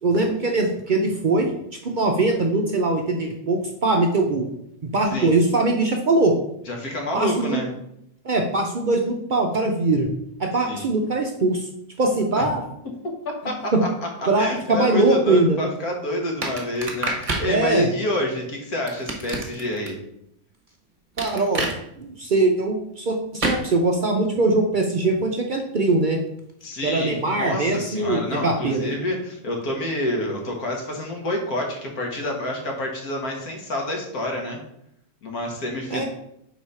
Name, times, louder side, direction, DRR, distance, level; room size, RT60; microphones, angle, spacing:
voice 1, 0.0-1.5 1.8-4.5 4.8-6.3 7.1-7.6 8.2-10.1 10.4-11.7 12.0-12.6 13.7-13.8 14.3-15.6 17.5-17.9 21.2-21.7 22.0-26.2 26.8-29.0 35.9-36.0, right 2 dB, 60° right, 3 dB, 0.5 m, -21 dB
voice 2, 6.7-7.7 10.7-10.9 12.4-12.5 13.4-13.9 14.2-20.0 26.6-34.6 35.2-36.1, left 1 dB, 75° left, 1 dB, 1.9 m, -28 dB
sound 1, 16.4-17.5 18.9-19.9 21.2-21.8 23.4-23.6, right 2 dB, 35° right, 1.1 m, -27 dB
4.7 x 4.1 x 5.4 m, 0.77 s
omnidirectional pair, 1.6 m